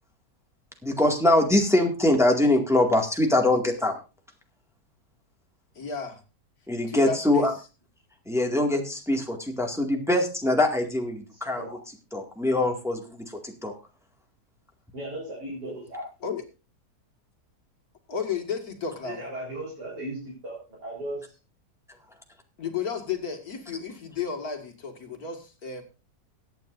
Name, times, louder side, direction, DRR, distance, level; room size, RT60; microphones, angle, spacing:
voice 1, 0.8-4.0 6.7-7.5 8.3-11.6 12.1-13.2 13.6-13.7, left 1 dB, ahead, 2 dB, 1.9 m, -23 dB
voice 2, 5.8-6.2 6.9-7.5 16.2-16.4 18.1-19.2 22.6-25.8, left 6 dB, 65° left, 4 dB, 2.4 m, -33 dB
voice 3, 11.3-11.8 14.9-16.1 19.0-21.4, right 1 dB, 85° right, -4 dB, 4.7 m, -37 dB
22.5 x 9.3 x 2.6 m, 0.31 s
omnidirectional pair, 1.8 m